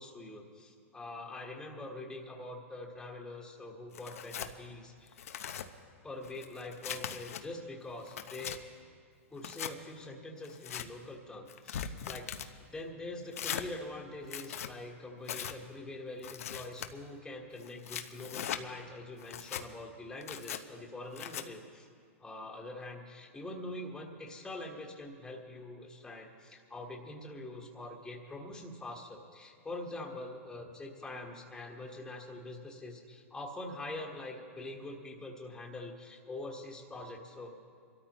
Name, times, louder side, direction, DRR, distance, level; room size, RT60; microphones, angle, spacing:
voice 1, 0.0-5.3 6.0-8.6 9.3-21.9 22.2-37.6, left 2 dB, 10° left, -1 dB, 1.5 m, -44 dB
Tearing, 3.9-4.5 5.1-5.7 6.2-7.4 7.9-8.6 9.4-9.7 10.4-10.9 11.5-12.5 13.3-13.7 14.2-14.7 15.2-15.6 16.2-16.9 17.6-18.6 19.2-19.6 20.2-20.6 21.2-21.4, left 9 dB, 80° left, 0.8 m, -40 dB
25.5 x 13.0 x 3.1 m, 2.2 s
hypercardioid pair, 130°, 8 cm